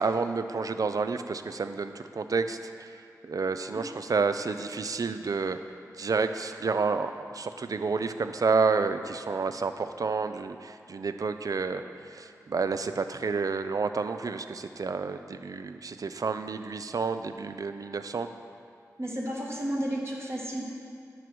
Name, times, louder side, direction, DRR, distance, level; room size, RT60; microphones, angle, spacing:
voice 1, 0.0-3.0 3.2-5.6 6.0-18.3, right 4 dB, 60° right, 9 dB, 0.5 m, -30 dB
voice 2, 19.0-20.6, equal, 40° right, -3 dB, 1.9 m, -32 dB
10.5 x 4.7 x 6.2 m, 2.4 s
cardioid pair, 50°, 7 cm